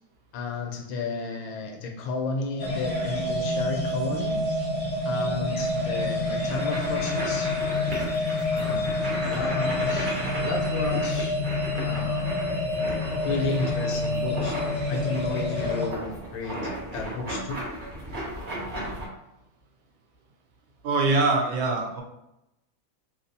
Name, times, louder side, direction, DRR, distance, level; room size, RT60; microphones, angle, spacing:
voice 1, 0.3-4.4 5.0-7.5 8.5-11.4 11.8-12.3 13.2-14.6 14.9-17.7, left 3 dB, 80° left, 3 dB, 1.3 m, -32 dB
sound 1, 2.6-15.9, left 2 dB, 55° left, 0.7 m, -28 dB
sound 2, 6.5-19.1, right 1 dB, 55° right, 0.5 m, -35 dB
voice 2, 20.8-22.0, right 3 dB, 75° right, 1 dB, 1.4 m, -23 dB
3.4 x 2.9 x 2.6 m, 0.88 s
omnidirectional pair, 2.1 m